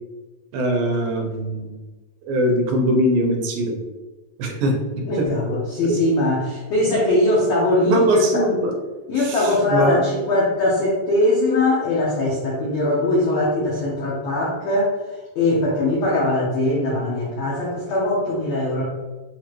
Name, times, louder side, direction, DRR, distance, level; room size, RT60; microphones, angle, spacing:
voice 1, 0.5-1.7 2.3-3.8 4.4-4.7 5.2-5.3 6.9-7.0 7.9-8.7 9.2-10.0, right 1 dB, 80° right, 0 dB, 2.4 m, -21 dB
voice 2, 5.1-8.5 9.1-14.9 15.3-18.8, left 1 dB, 80° left, -5 dB, 1.5 m, -21 dB
6.3 x 2.5 x 3.0 m, 1.2 s
omnidirectional pair, 4.1 m